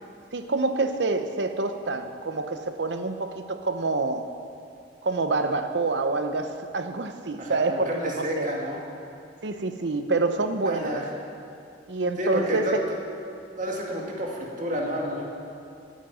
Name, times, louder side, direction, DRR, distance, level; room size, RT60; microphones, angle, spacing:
voice 1, 0.3-4.3 5.0-8.5 9.4-11.0 11.9-12.8, right 3 dB, 75° right, 8 dB, 0.8 m, -27 dB
voice 2, 7.4-8.8 10.7-11.1 12.2-13.0 13.6-15.3, equal, 45° right, -2 dB, 2.1 m, -30 dB
9.3 x 9.1 x 9.2 m, 2.5 s
head